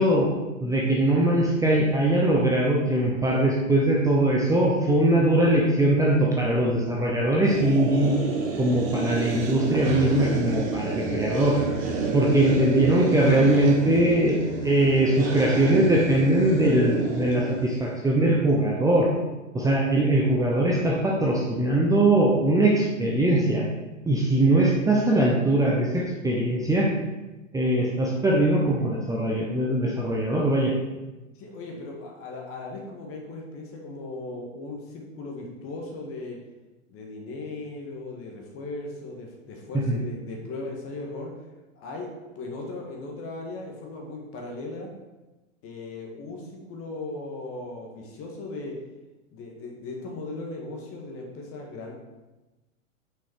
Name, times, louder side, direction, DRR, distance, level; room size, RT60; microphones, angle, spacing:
voice 1, 0.0-8.1 8.6-11.6 12.1-19.1 19.5-23.6 24.0-26.9 27.5-30.7 39.9-40.0, right 1 dB, 10° right, -4 dB, 0.9 m, -21 dB
sound 1, 7.5-17.9, right 4 dB, 45° right, 1.7 m, -30 dB
voice 2, 31.4-36.4 36.9-41.3 41.8-42.1 42.4-44.9 45.6-48.8 49.3-51.9, left 2 dB, 35° left, 0 dB, 1.8 m, -37 dB
6.1 x 5.6 x 4.5 m, 1.1 s
hypercardioid pair, 105°, 40 cm